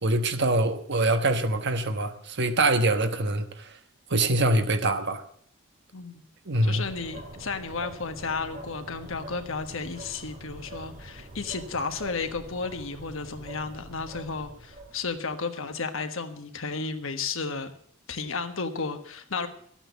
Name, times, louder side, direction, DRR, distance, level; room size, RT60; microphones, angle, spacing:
voice 1, 0.0-3.7 4.1-5.2 6.5-6.8, right 2 dB, 55° right, 1.2 m, -24 dB
voice 2, 6.6-17.7 18.1-19.5, left 4 dB, 65° left, 1.4 m, -33 dB
sound 1, 6.8-15.3, right 1 dB, 40° right, 2.2 m, -44 dB
13.5 x 8.9 x 8.2 m
head